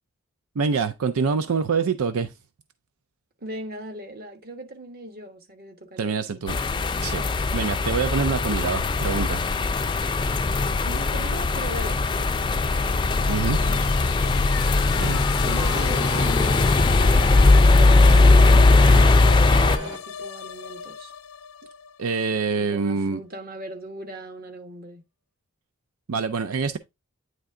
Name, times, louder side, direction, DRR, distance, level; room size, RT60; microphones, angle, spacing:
voice 1, 0.6-2.3 6.0-6.6 7.0-7.2 7.5-9.4 13.3-13.6 14.9-15.2 22.0-23.2 26.1-26.8, right 5 dB, 80° right, 0.5 m, -25 dB
voice 2, 3.4-6.4 10.8-14.4 15.4-21.1 22.6-25.0, right 1 dB, 45° right, 1.3 m, -39 dB
sound 1, 6.5-19.8, left 3 dB, 20° left, 0.3 m, -19 dB
sound 2, 13.2-22.8, left 9 dB, 80° left, 0.4 m, -37 dB
sound 3, 15.0-20.0, right 1 dB, 20° right, 1.2 m, -35 dB
9.2 x 3.3 x 3.7 m
head